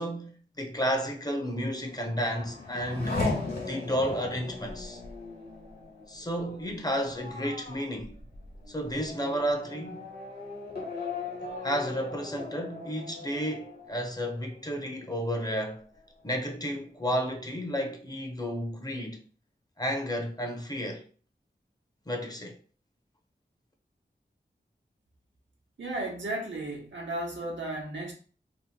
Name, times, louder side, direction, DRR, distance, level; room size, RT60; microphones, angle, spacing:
voice 1, 0.0-3.2 3.7-5.0 6.1-8.2 8.7-10.1 11.6-15.8 16.2-19.2 19.8-21.0 22.1-22.6, equal, 20° left, 0.5 m, -32 dB
Race car auto racing / Accelerating revving vroom, 1.7-14.9 15.3-16.0, left 3 dB, 55° left, 1.2 m, -38 dB
voice 2, 25.8-28.1, right 2 dB, 90° right, 0.8 m, -34 dB
2.8 x 2.0 x 3.5 m
wide cardioid pair, 60°, 19 cm